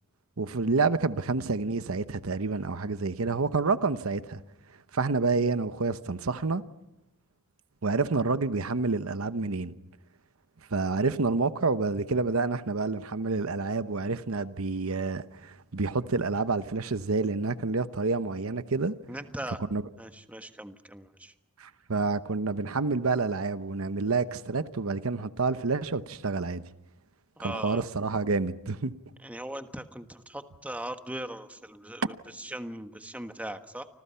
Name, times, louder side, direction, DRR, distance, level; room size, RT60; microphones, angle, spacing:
voice 1, 0.4-4.4 4.9-6.6 7.8-9.7 10.7-18.9 19.7-19.8 21.6-26.6 27.4-28.9, right 3 dB, 75° right, 0.9 m, -28 dB
voice 2, 19.1-19.6 20.0-21.3 27.4-27.9 29.2-33.9, right 1 dB, 5° right, 1.3 m, -39 dB
29.5 x 25.5 x 5.7 m
head